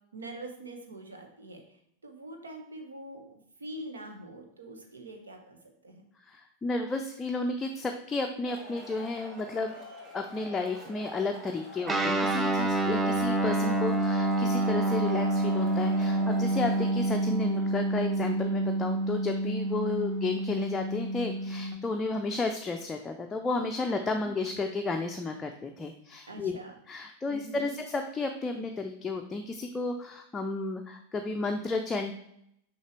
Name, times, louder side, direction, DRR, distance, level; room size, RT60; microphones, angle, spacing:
voice 1, 0.1-1.6 2.0-6.0 24.1-24.5 26.3-26.8 27.3-27.8, right 1 dB, 70° right, 4 dB, 1.2 m, -44 dB
voice 2, 6.3-9.8 10.1-26.6 26.9-32.1, left 3 dB, 15° left, 4 dB, 0.5 m, -32 dB
Male speech man speaking / Shout / Clapping, 8.5-16.9, right 1 dB, 35° right, 2.5 m, -47 dB
Guitar, 11.9-21.8, right 2 dB, 15° right, 0.8 m, -28 dB
6.4 x 5.4 x 3.3 m, 0.74 s
figure-of-eight pair, 90°, 0 cm